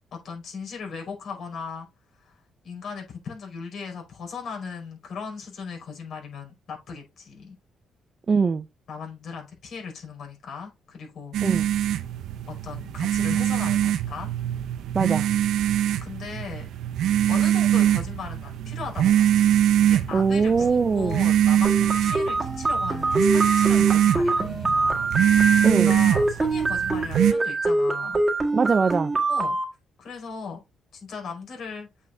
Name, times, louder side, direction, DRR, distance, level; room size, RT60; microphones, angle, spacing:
voice 1, 0.0-1.9 2.2-7.6 8.9-11.6 12.5-14.3 16.0-16.7 17.3-19.3 19.8-28.2 29.3-29.6 30.0-30.6 30.9-31.9, left 5 dB, 65° left, 5.1 m, -37 dB
voice 2, 8.3-8.6 11.4-11.7 14.9-15.3 20.1-21.2 25.6-25.9 28.5-29.1, right 5 dB, 40° right, 0.5 m, -21 dB
sound 1, 11.3-27.3, right 11 dB, 80° right, 0.7 m, -23 dB
sound 2, 21.6-29.6, right 2 dB, 25° right, 1.9 m, -25 dB
8.2 x 5.4 x 2.8 m
cardioid pair, 90°, 0 cm